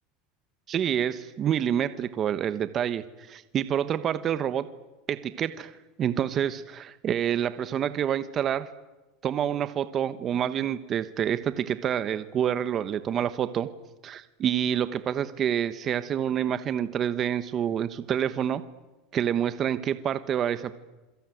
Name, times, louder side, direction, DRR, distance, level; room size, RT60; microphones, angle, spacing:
voice 1, 0.7-4.7 5.1-5.7 6.0-8.7 9.2-13.7 14.0-18.6 19.1-20.8, right 9 dB, 30° right, 12 dB, 1.2 m, -27 dB
27.5 x 22.5 x 9.3 m, 1.1 s
supercardioid pair, 145°, 0 cm